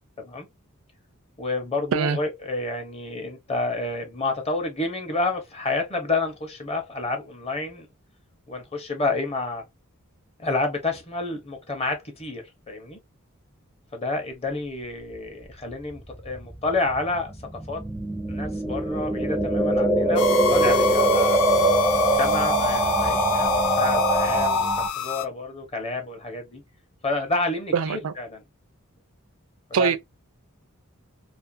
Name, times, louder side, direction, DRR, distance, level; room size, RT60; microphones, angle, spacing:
voice 1, 1.4-7.9 8.5-9.6 10.4-13.0 13.9-17.8 18.3-21.4 21.9-24.7 25.0-26.6 27.0-28.4 29.8-30.0, left 3 dB, 30° left, 0.7 m, -29 dB
sound 1, 15.6-24.9, right 2 dB, 10° right, 0.4 m, -23 dB
sound 2, 20.2-25.3, left 8 dB, 75° left, 0.3 m, -27 dB
voice 2, 27.7-28.1 29.7-30.0, right 6 dB, 75° right, 0.4 m, -22 dB
2.4 x 2.4 x 2.5 m
head